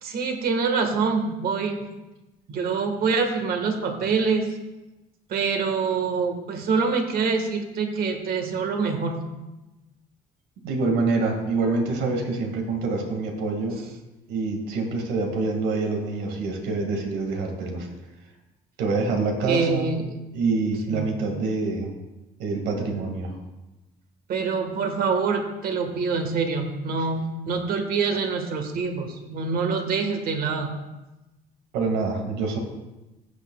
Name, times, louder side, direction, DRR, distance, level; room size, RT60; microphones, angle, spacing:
voice 1, 0.0-1.8 2.5-4.5 5.3-9.2 19.4-20.1 20.9-21.2 24.3-30.7, right 5 dB, 60° right, 5 dB, 1.6 m, -25 dB
voice 2, 10.6-13.8 14.3-17.9 18.8-19.9 20.3-21.9 22.4-23.3 31.7-32.6, right 3 dB, 90° right, 3 dB, 2.0 m, -26 dB
15.0 x 8.7 x 2.3 m, 1.0 s
cardioid pair, 110°, 17 cm